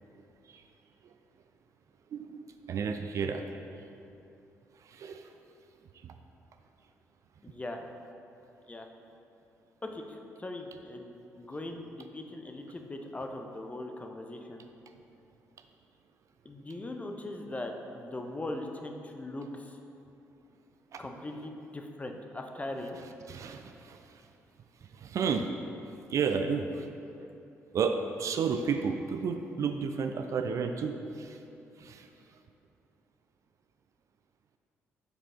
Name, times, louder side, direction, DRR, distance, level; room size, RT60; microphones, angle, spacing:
voice 1, 2.1-3.6 4.8-5.3 6.0-6.1 20.9-21.0 23.3-24.2 24.9-25.5 26.1-26.9 27.7-31.4 31.8-32.1, right 5 dB, 45° right, 6 dB, 0.3 m, -32 dB
voice 2, 7.4-7.8 8.7-8.9 9.8-14.6 16.4-19.8 21.0-23.0, left 2 dB, 20° left, 3 dB, 0.6 m, -40 dB
6.6 x 4.8 x 3.7 m, 2.8 s
figure-of-eight pair, 40°, 7 cm